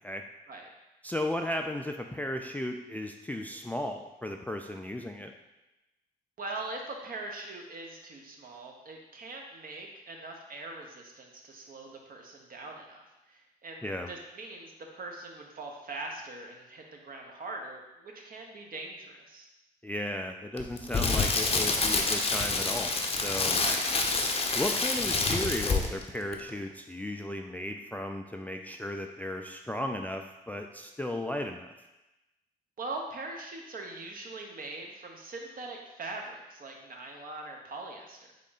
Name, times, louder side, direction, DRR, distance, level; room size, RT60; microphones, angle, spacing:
voice 1, 1.0-5.3 13.8-14.1 19.8-23.6 24.5-31.7, left 1 dB, 10° left, 4 dB, 0.3 m, -35 dB
voice 2, 6.4-19.5 23.6-23.9 32.8-38.3, right 2 dB, 50° right, 1 dB, 0.9 m, -42 dB
Crackle, 20.6-26.1 26.3-26.5, left 3 dB, 30° left, 0.7 m, -27 dB
3.7 x 3.6 x 3.9 m, 1.0 s
hypercardioid pair, 50°, 19 cm